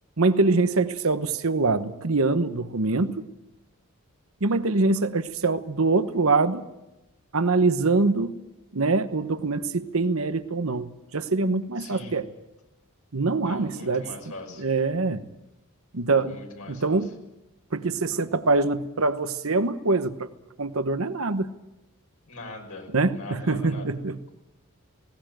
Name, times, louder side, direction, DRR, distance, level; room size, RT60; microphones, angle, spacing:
voice 1, 0.2-3.2 4.4-6.6 7.3-8.5 8.7-12.3 13.1-14.1 14.6-15.3 15.9-16.4 16.7-17.1 17.7-20.3 20.6-21.5 22.9-24.2, right 3 dB, 65° right, 1.0 m, -24 dB
voice 2, 11.8-12.2 13.4-14.7 16.3-17.1 22.3-23.9, left 2 dB, 75° left, 5.7 m, -41 dB
18.5 x 18.0 x 9.0 m
head